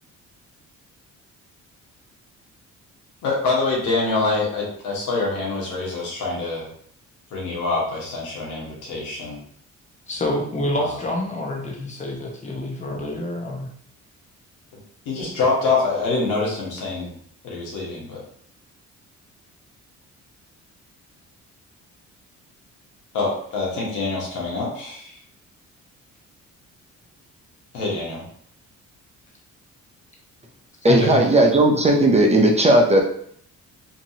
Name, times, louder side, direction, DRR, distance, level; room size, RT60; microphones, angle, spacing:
voice 1, 3.2-6.6 7.3-9.4 10.8-10.9 15.0-17.1 17.4-18.2 23.1-25.1 27.7-28.2, left 3 dB, 85° left, -3 dB, 1.2 m, -25 dB
voice 2, 10.1-13.7 30.8-31.3, left 1 dB, 25° left, -1 dB, 0.9 m, -27 dB
voice 3, 30.8-33.0, right 1 dB, 20° right, 1 dB, 0.5 m, -16 dB
2.9 x 2.6 x 2.7 m, 0.62 s
cardioid pair, 90°, 30 cm